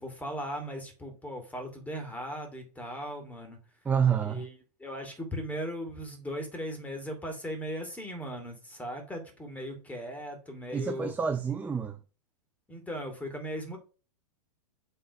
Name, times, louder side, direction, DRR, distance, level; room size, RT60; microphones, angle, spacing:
voice 1, 0.0-3.6 4.2-11.2 12.7-13.8, equal, 5° left, 2.5 m, -38 dB
voice 2, 3.9-4.5 10.7-12.0, right 7 dB, 10° right, 0.5 m, -28 dB
7.8 x 3.9 x 5.3 m
hypercardioid pair, 130°, 20 cm